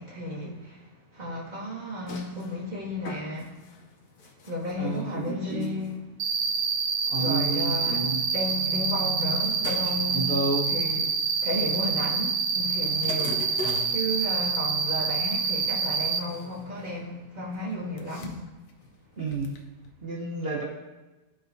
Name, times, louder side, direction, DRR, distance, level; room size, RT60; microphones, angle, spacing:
voice 1, 0.0-3.6 4.4-6.1 7.2-10.3 10.7-13.5 13.9-18.4, equal, 30° right, 1.7 m, -33 dB
sound 1, 1.8-14.0 15.2-15.4 15.8-17.1 17.4-19.9, left 4 dB, 85° left, 1.2 m, -44 dB
voice 2, 4.8-5.8 7.1-8.2 10.1-10.7 13.6-13.9 19.2-19.5 20.0-20.6, right 3 dB, 45° right, 1.1 m, -30 dB
Cricket, 6.2-16.2, right 5 dB, 85° right, 0.4 m, -27 dB
12.5 x 4.9 x 2.6 m
omnidirectional pair, 1.6 m